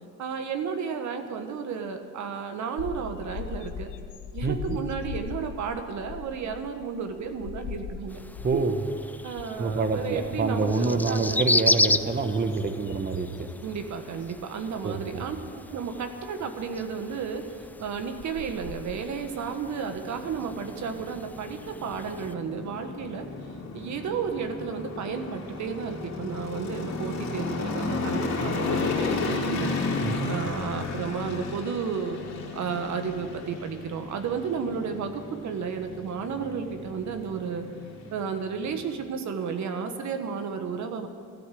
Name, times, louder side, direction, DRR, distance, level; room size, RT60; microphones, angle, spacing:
voice 1, 0.2-3.9 4.3-8.2 8.5-8.6 9.2-11.4 13.6-17.5 17.8-23.3 23.7-29.8 30.3-32.2 32.5-37.7 38.1-41.1, right 6 dB, 70° right, 6 dB, 1.5 m, -32 dB
sound 1, 2.8-8.8 9.2-9.6 9.9-10.9 11.5-13.8 14.2-14.4 15.5-15.6 17.7-17.8 18.2-19.1, left 7 dB, 85° left, 1.0 m, -40 dB
voice 2, 4.4-4.8 8.4-8.8 9.6-13.5 14.8-15.2 30.0-30.4, right 4 dB, 30° right, 7 dB, 1.1 m, -27 dB
sound 2, 8.1-22.3, left 2 dB, 5° left, 0.4 m, -33 dB
sound 3, 19.6-38.9, left 3 dB, 60° left, 3.1 m, -34 dB
13.0 x 13.0 x 7.6 m, 2.3 s
cardioid pair, 90°, 30 cm